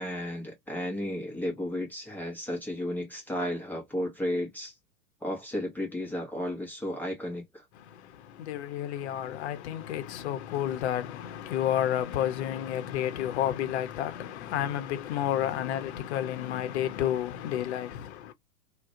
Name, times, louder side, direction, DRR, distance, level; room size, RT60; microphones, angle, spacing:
voice 1, 0.0-4.7 5.2-7.6, left 1 dB, 5° left, 0.6 m, -33 dB
voice 2, 7.7-18.3, left 11 dB, 50° left, 0.7 m, -31 dB
2.3 x 2.1 x 2.6 m
figure-of-eight pair, 95°, 42 cm